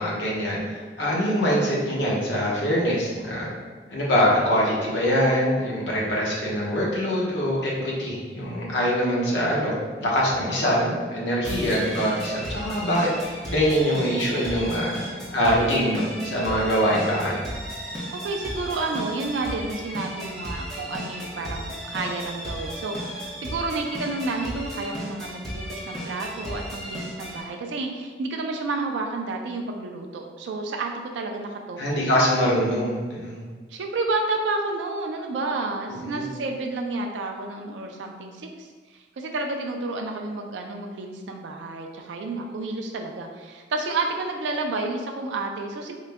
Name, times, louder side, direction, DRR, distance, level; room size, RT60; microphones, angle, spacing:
voice 1, 0.0-3.5 3.9-9.7 10.0-13.1 13.5-14.9 15.3-17.4 31.8-33.4 35.9-36.2, equal, 75° left, -5 dB, 0.9 m, -23 dB
sound 1, 11.4-27.4, equal, 5° left, 0.7 m, -35 dB
voice 2, 18.1-32.1 33.7-46.0, right 3 dB, 75° right, 2 dB, 0.4 m, -30 dB
3.8 x 2.1 x 3.4 m, 1.5 s
head